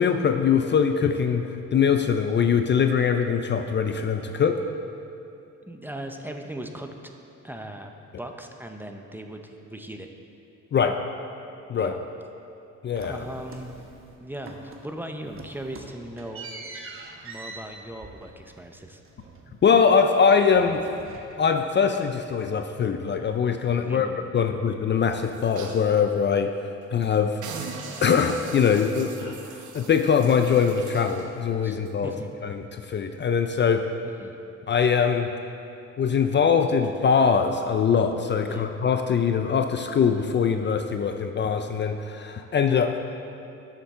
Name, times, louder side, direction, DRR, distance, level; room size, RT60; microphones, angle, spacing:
voice 1, 0.0-4.6 10.7-11.0 11.7-11.9 12.8-13.2 19.6-21.0 21.4-24.1 24.3-26.5 26.9-27.4 28.0-32.1 32.4-33.8 34.7-35.3 36.0-43.0, left 6 dB, 40° left, 6 dB, 0.5 m, -22 dB
voice 2, 5.7-7.1 7.4-10.1 11.7-12.0 13.1-13.8 14.2-16.5 17.2-19.0 23.8-24.6 31.6-31.8 32.0-32.3 34.2-34.4 38.4-38.7, right 1 dB, 5° right, 4 dB, 0.7 m, -39 dB
sound 1, 12.9-14.2 14.4-14.9 15.2-20.2 20.4-21.7, right 3 dB, 45° right, 1.1 m, -44 dB
sound 2, 25.0-25.9 26.4-26.5 26.8-27.1 27.4-31.3 31.9-32.0, right 5 dB, 75° right, 1.1 m, -40 dB
12.0 x 7.3 x 3.7 m, 2.7 s
cardioid pair, 90°, 30 cm